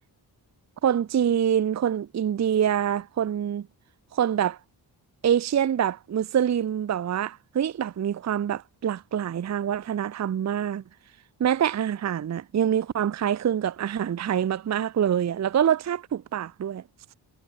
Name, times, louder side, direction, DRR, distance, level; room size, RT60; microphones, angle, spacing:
voice 1, 0.8-3.7 4.1-4.6 5.2-10.8 11.4-16.8, right 9 dB, 40° right, 0.6 m, -25 dB
wide cardioid pair, 145°, 42 cm